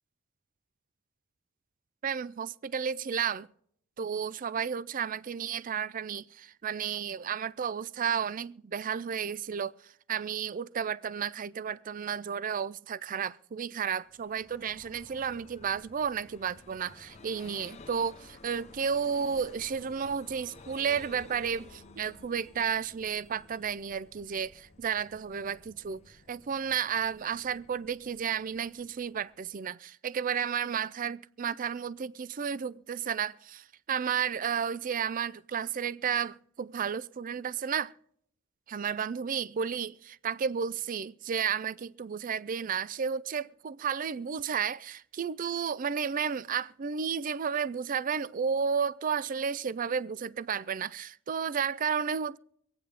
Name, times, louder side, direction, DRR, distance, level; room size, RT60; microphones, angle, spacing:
voice 1, 2.0-3.5 4.0-37.9 38.7-52.4, right 7 dB, 45° right, 0.4 m, -32 dB
Vehicle, 14.0-29.5, left 3 dB, 35° left, 0.8 m, -54 dB
25.5 x 8.8 x 3.3 m
head